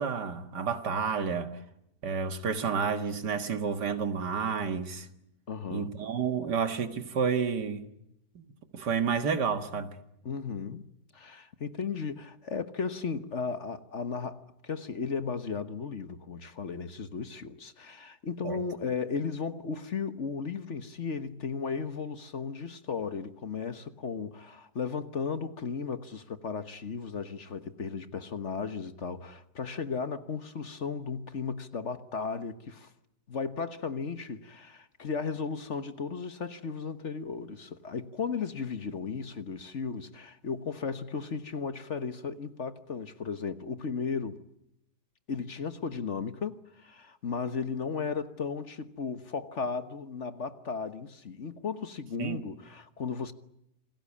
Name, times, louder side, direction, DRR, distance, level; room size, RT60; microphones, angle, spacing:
voice 1, 0.0-1.6 2.0-5.1 5.7-7.9 8.4-8.5 8.7-10.0 18.4-18.6 52.2-52.4, right 6 dB, 80° right, 2.3 m, -30 dB
voice 2, 5.5-6.0 10.2-10.9 11.1-32.9 33.3-44.4 45.3-53.3, left 5 dB, 45° left, 1.4 m, -35 dB
28.0 x 20.5 x 8.6 m
omnidirectional pair, 1.8 m